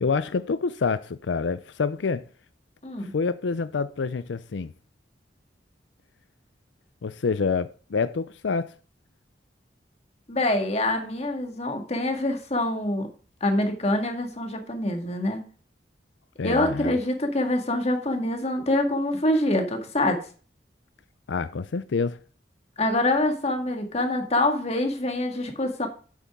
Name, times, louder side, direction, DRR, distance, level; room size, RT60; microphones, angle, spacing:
voice 1, 0.0-2.2 3.0-4.7 7.0-8.7 16.4-16.9 21.3-22.2, left 4 dB, 90° left, 0.5 m, -27 dB
voice 2, 10.3-13.1 13.4-15.4 16.4-20.2 22.8-25.9, left 1 dB, 35° left, 1.9 m, -25 dB
9.1 x 8.5 x 3.7 m
head